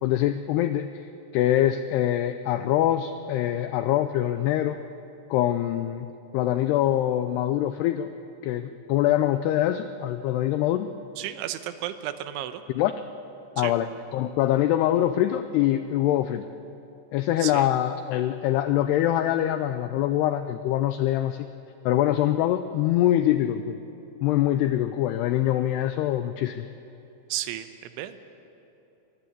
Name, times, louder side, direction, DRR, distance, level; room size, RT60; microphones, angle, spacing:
voice 1, 0.0-4.8 5.3-6.1 6.3-8.1 8.4-10.9 12.8-13.0 13.6-16.5 17.1-21.5 21.9-23.8 24.2-26.7, left 12 dB, 85° left, 10 dB, 2.3 m, -24 dB
voice 2, 11.2-12.6 13.6-13.7 17.4-17.7 27.3-28.2, right 12 dB, 85° right, 10 dB, 3.3 m, -33 dB
23.5 x 19.5 x 8.4 m, 3.0 s
omnidirectional pair, 5.4 m